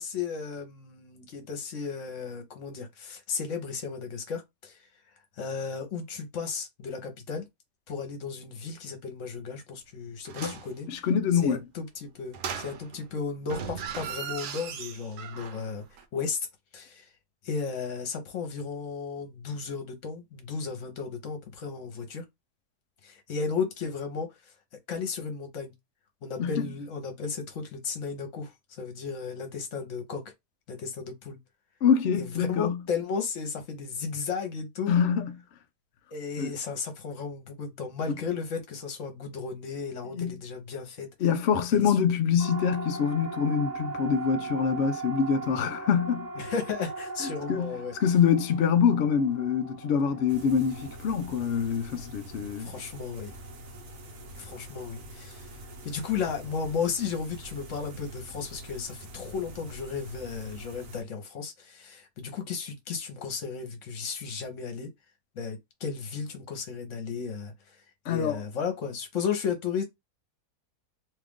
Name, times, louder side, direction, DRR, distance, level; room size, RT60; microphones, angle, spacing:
voice 1, 0.0-4.9 5.4-7.4 7.9-10.9 11.3-15.8 16.1-16.5 16.7-17.1 17.4-22.2 23.0-24.3 24.9-25.7 26.2-30.2 30.7-31.4 32.2-34.9 36.1-41.1 41.7-41.9 46.4-47.9 52.6-53.3 54.3-55.5 55.8-64.9 65.3-67.8 68.1-69.8, left 5 dB, 55° left, 1.1 m, -34 dB
sound 1, 10.3-10.7 12.3-13.1 13.4-15.7 16.0-16.1, right 7 dB, 85° right, 1.2 m, -38 dB
voice 2, 10.9-11.6 26.4-26.7 31.8-32.8 34.9-35.3 36.4-36.5 38.1-38.2 40.1-40.4 41.2-46.3 47.2-52.7 68.1-68.4, left 7 dB, 90° left, 0.5 m, -25 dB
Siren, 42.4-56.7, right 3 dB, 35° right, 0.8 m, -41 dB
sound 2, 50.3-61.0, equal, 60° right, 1.1 m, -45 dB
2.9 x 2.4 x 3.5 m
omnidirectional pair, 1.7 m